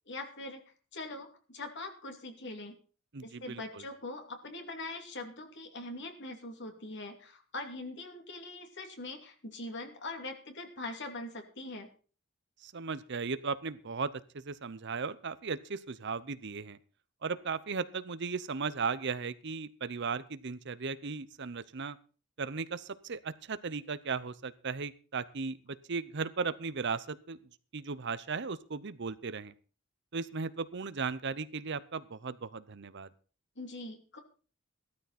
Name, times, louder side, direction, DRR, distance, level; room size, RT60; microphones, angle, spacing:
voice 1, 0.1-0.6 0.9-2.7 3.2-11.9 33.6-34.2, left 2 dB, 60° left, 5 dB, 2.8 m, -42 dB
voice 2, 3.1-3.8 12.6-16.8 17.2-22.0 22.4-27.4 27.7-29.5 30.1-33.1, right 5 dB, 60° right, 15 dB, 0.8 m, -36 dB
15.5 x 13.0 x 4.3 m, 0.38 s
head